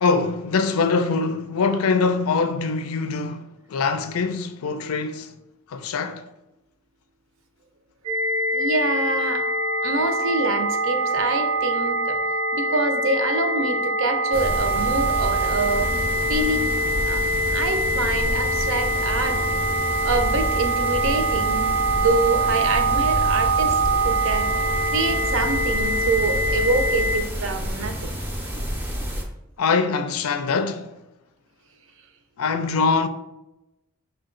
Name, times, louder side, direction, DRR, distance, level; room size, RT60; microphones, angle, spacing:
voice 1, 0.0-5.3 5.7-6.2 29.6-30.9 32.4-33.1, left 4 dB, 90° left, 0.4 m, -23 dB
sound 1, 8.0-27.2, right 1 dB, 85° right, 0.9 m, -24 dB
voice 2, 8.5-9.5 9.8-12.2 12.5-15.9 16.3-16.7 17.0-17.2 17.5-19.4 20.0-23.8 24.0-28.2, right 3 dB, 70° right, 0.5 m, -26 dB
Bedroom tone, 14.3-29.2, equal, 10° right, 0.4 m, -29 dB
5.6 x 2.3 x 3.7 m
head